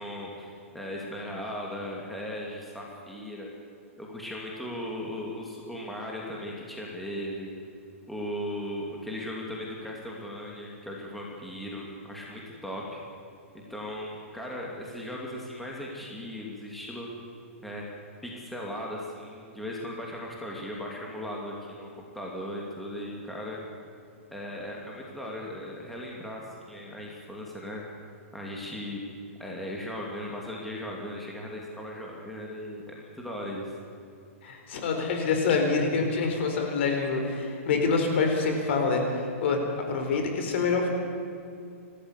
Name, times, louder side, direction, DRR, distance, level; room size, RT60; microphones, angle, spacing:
voice 1, 0.0-3.5 4.0-7.5 8.1-13.0 13.7-17.1 17.6-17.9 18.2-21.9 22.1-23.6 24.3-27.8 28.3-29.0 29.4-33.7, left 1 dB, ahead, -3 dB, 2.7 m, -37 dB
voice 2, 34.4-39.6 39.9-40.9, left 4 dB, 55° left, 3 dB, 4.6 m, -26 dB
29.5 x 13.5 x 8.3 m, 2.4 s
hypercardioid pair, 160°, 8 cm